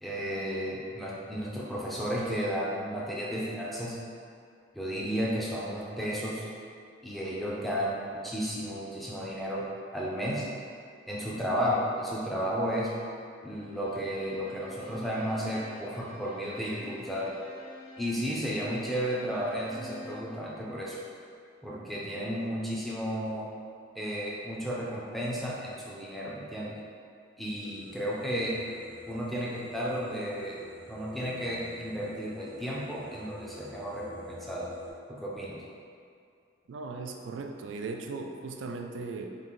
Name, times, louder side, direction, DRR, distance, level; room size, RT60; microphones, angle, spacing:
voice 1, 0.0-4.0 4.7-6.5 7.0-9.6 9.9-10.4 11.1-12.9 13.4-17.3 18.0-21.0 21.6-23.5 23.9-26.7 27.4-28.5 29.1-30.6 30.9-34.7 35.1-35.6, equal, ahead, -6 dB, 0.5 m, -33 dB
Bowed string instrument, 13.6-20.4, left 1 dB, 45° left, 0.7 m, -50 dB
sound 1, 27.6-34.9, left 4 dB, 70° left, 1.3 m, -47 dB
voice 2, 36.7-39.4, right 3 dB, 80° right, 4 dB, 0.3 m, -38 dB
3.7 x 2.5 x 3.6 m, 2.4 s
head